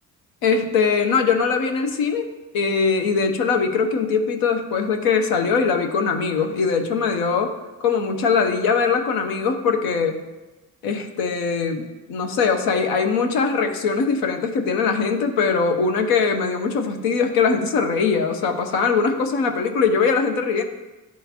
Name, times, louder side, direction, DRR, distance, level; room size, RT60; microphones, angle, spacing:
voice 1, 0.4-2.3 2.5-7.5 7.8-10.2 10.8-20.6, left 5 dB, 85° left, 5 dB, 0.7 m, -21 dB
10.0 x 3.8 x 2.8 m, 1.1 s
supercardioid pair, 65°, 35 cm